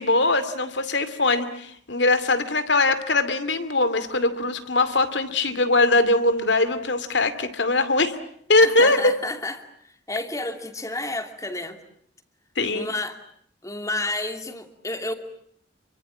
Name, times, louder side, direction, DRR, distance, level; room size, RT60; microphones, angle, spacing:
voice 1, 0.0-8.2 8.5-9.1 12.6-12.9, left 2 dB, 75° left, 12 dB, 2.5 m, -21 dB
voice 2, 8.6-11.8 12.7-13.2 13.6-15.1, left 2 dB, 20° left, 7 dB, 2.6 m, -31 dB
28.0 x 24.5 x 8.7 m, 0.66 s
head